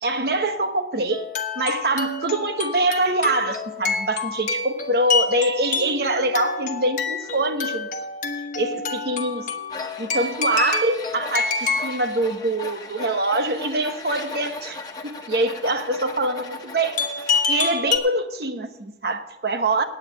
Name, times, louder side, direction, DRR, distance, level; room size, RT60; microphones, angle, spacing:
voice 1, 0.0-1.2 1.5-7.9 8.5-9.5 10.0-17.0 17.3-19.8, right 2 dB, 60° right, 7 dB, 1.1 m, -24 dB
sound 1, 1.1-12.1 17.0-18.0, left 4 dB, 45° left, 1.1 m, -27 dB
Tools, 9.7-17.6, left 3 dB, 20° left, 1.2 m, -37 dB
9.2 x 9.0 x 8.2 m, 0.93 s
head